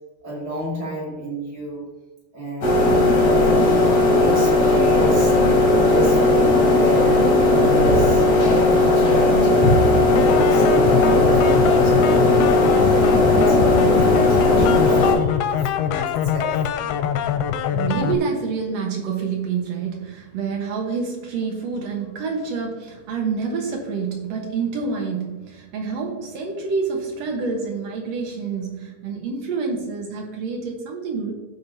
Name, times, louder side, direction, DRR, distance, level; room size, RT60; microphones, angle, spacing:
voice 1, 0.2-1.9 2.3-2.9 3.2-5.4 5.8-9.6 9.8-12.4 12.8-16.6, equal, 25° right, -4 dB, 2.6 m, -32 dB
sound 1, 2.6-15.1, left 2 dB, 35° left, 1.7 m, -16 dB
sound 2, 10.2-18.2, left 8 dB, 85° left, 2.4 m, -24 dB
voice 2, 17.7-31.3, right 5 dB, 75° right, 1 dB, 1.5 m, -27 dB
16.5 x 5.6 x 2.7 m, 1.2 s
omnidirectional pair, 4.7 m